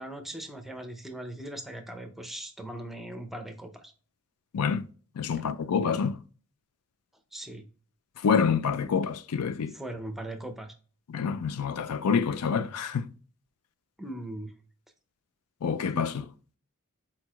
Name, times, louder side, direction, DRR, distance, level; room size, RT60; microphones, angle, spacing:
voice 1, 0.0-3.9 7.3-7.7 9.7-10.7 14.0-14.5, right 1 dB, ahead, 0.6 m, -39 dB
voice 2, 4.5-4.9 5.2-6.2 8.2-9.8 11.1-13.1 15.6-16.3, left 6 dB, 80° left, 0.4 m, -27 dB
4.5 x 4.3 x 2.3 m
head